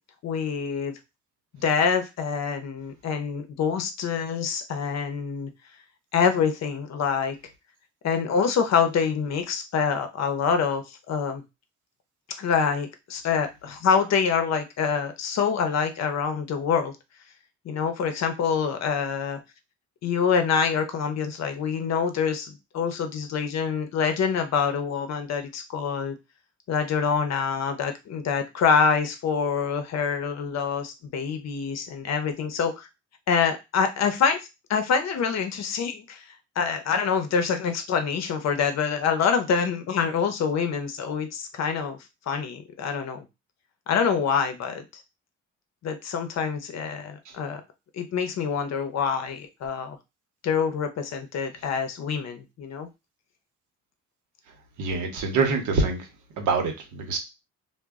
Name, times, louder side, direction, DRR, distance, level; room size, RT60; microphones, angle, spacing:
voice 1, 0.2-0.9 1.6-5.5 6.1-7.4 8.0-11.4 12.4-16.9 17.6-19.4 20.0-26.2 26.7-32.9 33.3-34.4 34.7-36.3 36.6-42.0 42.3-43.3 43.9-45.0 45.8-47.6 47.9-50.0 50.4-52.9, left 6 dB, 60° left, 7 dB, 0.6 m, -26 dB
voice 2, 54.8-56.1 56.4-57.2, right 4 dB, 80° right, 4 dB, 0.9 m, -25 dB
2.1 x 2.0 x 3.4 m, 0.24 s
cardioid pair, 90°, 30 cm